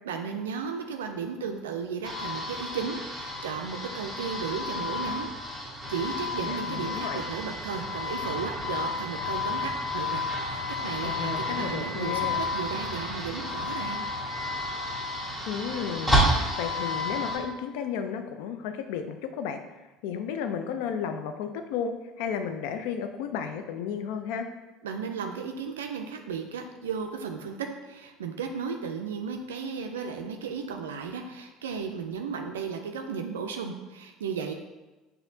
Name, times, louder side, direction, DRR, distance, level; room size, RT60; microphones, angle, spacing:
voice 1, 0.0-12.3 12.5-14.0 24.8-27.6 27.8-34.5, right 6 dB, 80° right, 4 dB, 0.3 m, -35 dB
sound 1, 2.0-17.4, left 1 dB, 10° left, 1.1 m, -31 dB
voice 2, 6.4-7.2 11.0-12.4 15.5-16.1 16.6-19.6 20.0-21.9 22.2-24.5, left 7 dB, 70° left, 7 dB, 0.4 m, -33 dB
5.8 x 2.7 x 2.6 m, 1.1 s
hypercardioid pair, 65°, 0 cm